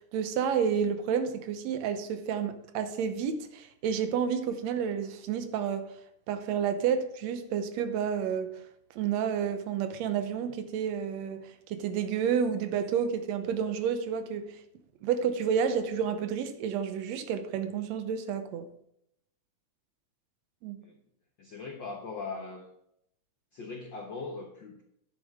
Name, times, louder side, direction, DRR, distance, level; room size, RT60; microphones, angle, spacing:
voice 1, 0.1-5.9 6.3-8.6 8.9-14.6 15.0-18.7 20.6-20.8, right 7 dB, 70° right, 1.9 m, -30 dB
voice 2, 21.4-22.6 23.5-24.8, left 4 dB, 90° left, 1.0 m, -40 dB
10.5 x 7.9 x 3.6 m
omnidirectional pair, 3.6 m